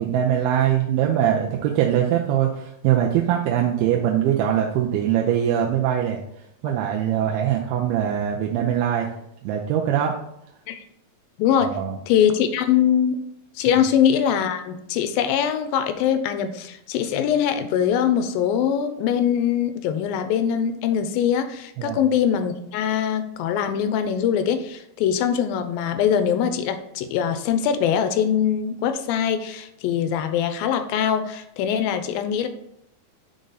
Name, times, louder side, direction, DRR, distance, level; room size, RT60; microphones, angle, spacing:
voice 1, 0.0-6.2 6.6-9.1 9.4-10.1 11.6-12.0 13.7-13.8 21.8-22.0, right 10 dB, 90° right, 0 dB, 2.6 m, -22 dB
voice 2, 11.4-11.7 12.1-13.2 13.6-32.5, left 8 dB, 80° left, 9 dB, 2.2 m, -22 dB
6.3 x 4.0 x 3.9 m, 0.79 s
omnidirectional pair, 4.3 m